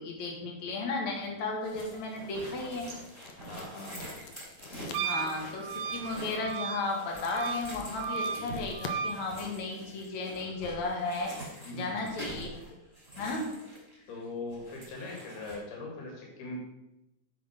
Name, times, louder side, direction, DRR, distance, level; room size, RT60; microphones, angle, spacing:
voice 1, 0.0-2.9 5.0-12.5 13.2-13.5, left 3 dB, 55° left, 0 dB, 3.0 m, -34 dB
sound 1, 1.1-10.1, left 5 dB, 70° left, 1.6 m, -50 dB
backpack rustling sounds, 1.6-14.2 14.5-15.6, right 1 dB, 15° left, 4.3 m, -45 dB
voice 2, 3.4-4.1 11.6-12.1 14.1-16.6, left 2 dB, 85° left, 0 dB, 4.0 m, -40 dB
Wind instrument woodwind instrument, 4.9-9.2, right 6 dB, 75° right, 2.0 m, -35 dB
8.5 x 6.5 x 6.5 m, 0.90 s
omnidirectional pair, 4.3 m